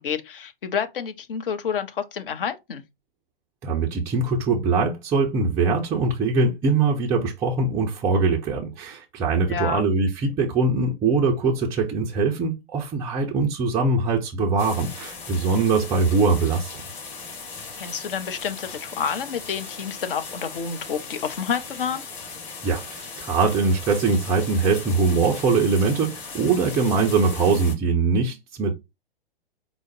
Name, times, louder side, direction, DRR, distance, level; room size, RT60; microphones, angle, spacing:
voice 1, 0.0-2.8 9.5-9.8 17.8-22.1, left 7 dB, 60° left, 0.8 m, -29 dB
voice 2, 3.6-16.8 22.6-28.7, right 4 dB, 10° right, 0.3 m, -22 dB
sound 1, 14.6-27.7, left 4 dB, 45° left, 2.3 m, -38 dB
4.8 x 2.0 x 3.9 m
figure-of-eight pair, 110°, 30 cm